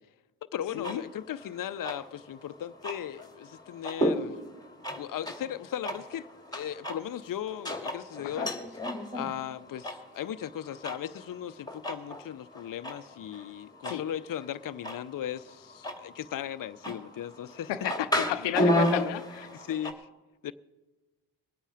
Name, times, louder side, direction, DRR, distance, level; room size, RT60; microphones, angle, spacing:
voice 1, 0.4-4.4 4.9-8.5 9.1-17.7 18.2-18.3 19.5-20.1 20.4-20.5, left 10 dB, 50° left, 0.7 m, -37 dB
sound 1, 0.7-19.9, equal, 10° left, 2.3 m, -34 dB
voice 2, 17.7-19.5, left 12 dB, 90° left, 0.7 m, -32 dB
21.5 x 9.0 x 4.9 m
supercardioid pair, 50°, 41 cm